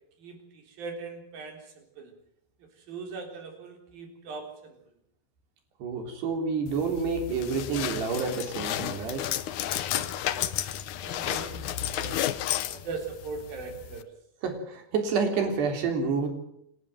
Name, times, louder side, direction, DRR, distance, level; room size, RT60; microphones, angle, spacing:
voice 1, 0.2-2.2 2.8-4.8 9.9-10.4 10.9-12.2 12.7-14.1, right 4 dB, 65° right, 5 dB, 5.6 m, -40 dB
voice 2, 5.8-9.3 14.4-16.3, right 5 dB, 85° right, 5 dB, 5.6 m, -28 dB
sound 1, 6.7-14.0, left 12 dB, 70° left, 1.9 m, -32 dB
28.5 x 12.5 x 9.2 m, 0.73 s
omnidirectional pair, 4.7 m